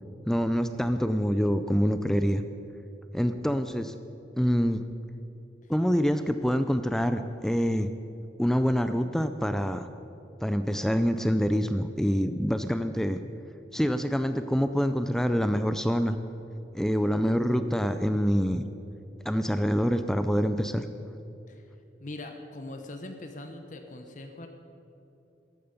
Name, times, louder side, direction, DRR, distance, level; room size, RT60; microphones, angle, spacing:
voice 1, 0.3-2.4 3.1-3.9 4.4-4.8 5.7-7.9 8.4-9.9 10.4-13.2 13.7-16.2 16.7-18.6 19.3-20.9, equal, 5° left, 9 dB, 0.4 m, -26 dB
voice 2, 22.0-24.5, left 2 dB, 45° left, 5 dB, 0.9 m, -41 dB
14.0 x 12.5 x 5.3 m, 2.9 s
head